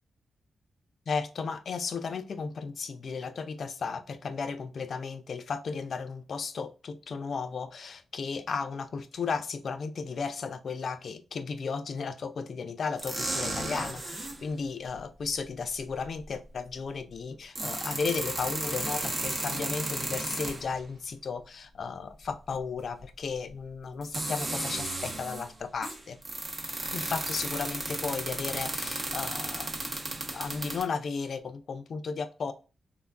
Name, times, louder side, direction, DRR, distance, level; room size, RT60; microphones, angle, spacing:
voice 1, 1.1-26.2 26.9-29.7 30.1-32.5, left 5 dB, 65° left, 9 dB, 0.4 m, -34 dB
sound 1, 13.0-14.4 15.9-16.0 17.3-20.8 23.0-23.1 24.0-25.5 25.8-30.8, right 2 dB, 40° right, 0.7 m, -34 dB
3.3 x 2.2 x 2.3 m, 0.32 s
cardioid pair, 70°, 0 cm